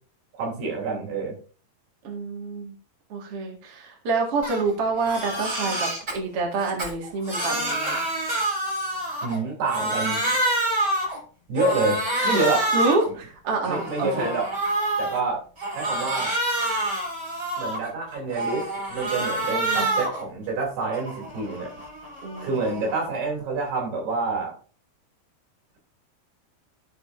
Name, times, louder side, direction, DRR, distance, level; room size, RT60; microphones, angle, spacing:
voice 1, 0.4-1.4 9.2-10.3 11.5-12.7 13.6-14.5 15.0-15.4 15.7-16.4 17.6-21.7 22.4-24.5, right 3 dB, 80° right, -1 dB, 5.0 m, -27 dB
voice 2, 2.0-2.7 3.1-8.0 12.7-14.3 19.5-19.9 22.2-22.5, right 3 dB, 45° right, 0 dB, 2.4 m, -27 dB
Crying sobbing, 4.4-4.6 5.0-6.1 6.6-9.4 9.6-11.2 11.6-13.1 13.5-15.2 15.6-17.9 18.3-20.2 20.6-23.0, right 1 dB, 25° right, 3.7 m, -27 dB
16.0 x 5.3 x 2.6 m, 0.37 s
omnidirectional pair, 4.6 m